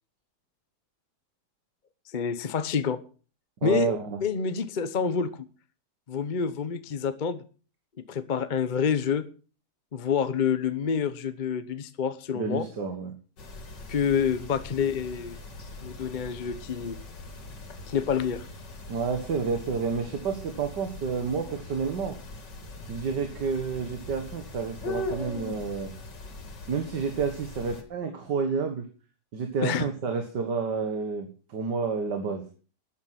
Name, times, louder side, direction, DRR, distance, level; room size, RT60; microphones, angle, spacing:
voice 1, 2.1-3.0 3.6-3.9 4.2-5.4 6.1-7.4 8.1-9.3 9.9-12.7 13.9-15.4 15.8-17.0 17.9-18.5 29.6-29.9, left 7 dB, 40° left, 12 dB, 0.7 m, -28 dB
voice 2, 3.6-4.2 12.3-13.1 18.9-22.2 22.9-25.9 26.7-28.9 29.3-32.4, right 5 dB, 80° right, 5 dB, 2.2 m, -30 dB
sound 1, 13.4-27.8, left 2 dB, 90° left, 2.9 m, -41 dB
13.0 x 9.5 x 5.8 m, 0.38 s
omnidirectional pair, 1.8 m